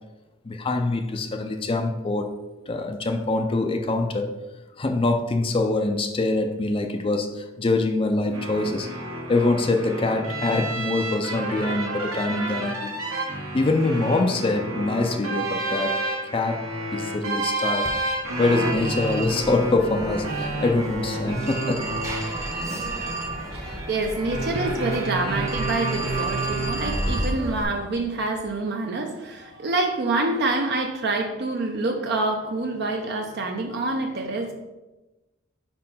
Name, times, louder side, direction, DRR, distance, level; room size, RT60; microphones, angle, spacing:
voice 1, 0.4-2.3 2.7-4.4 4.8-8.9 9.3-12.9 13.5-16.0 16.3-16.6 16.9-17.9 18.4-21.9, left 2 dB, 25° left, 5 dB, 0.4 m, -24 dB
sound 1, 8.3-27.2, right 2 dB, 85° right, 1.6 m, -30 dB
Telephone, 17.8-27.6, right 1 dB, 15° right, 0.8 m, -32 dB
voice 2, 23.5-34.5, right 2 dB, 50° right, 3 dB, 0.5 m, -27 dB
5.3 x 4.4 x 5.4 m, 1.1 s
head